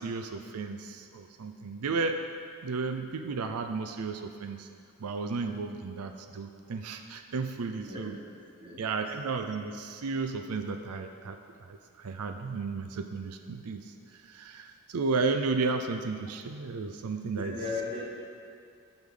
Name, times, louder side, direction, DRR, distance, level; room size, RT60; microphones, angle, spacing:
voice 1, 0.0-2.2 2.6-4.7 5.0-8.2 8.8-11.4 11.6-13.9 14.2-17.6, right 4 dB, 90° right, 7 dB, 0.5 m, -33 dB
voice 2, 7.7-8.2 8.6-8.8 17.3-18.0, left 3 dB, 25° right, -4 dB, 1.6 m, -37 dB
12.5 x 8.0 x 3.8 m, 2.3 s
head